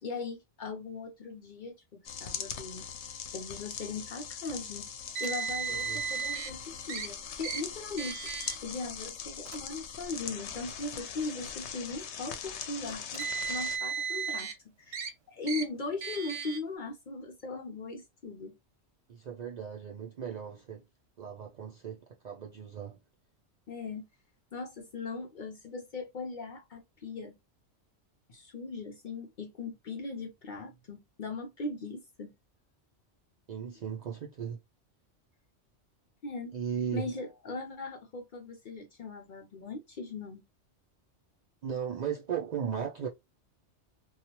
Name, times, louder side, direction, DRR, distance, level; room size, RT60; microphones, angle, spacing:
voice 1, 0.0-2.8 3.3-4.9 5.2-8.3 8.6-14.5 14.8-18.6 23.7-24.0 24.5-27.3 28.3-32.3 36.2-36.5 36.9-40.4, left 3 dB, 55° left, 0.5 m, -39 dB
sound 1, 2.1-13.8, left 7 dB, 75° left, 0.8 m, -41 dB
Car, 5.1-6.5 6.9-7.1 7.4-7.6 8.0-8.6 9.4-9.6 10.5-10.6 12.9-14.5 14.9-15.1 15.5-15.6 16.0-16.6, right 6 dB, 75° right, 1.0 m, -35 dB
voice 2, 5.7-6.0 19.1-20.9 21.2-23.0 33.5-34.6 36.5-37.1 41.6-43.1, right 7 dB, 60° right, 0.4 m, -36 dB
2.9 x 2.3 x 2.8 m
omnidirectional pair, 1.2 m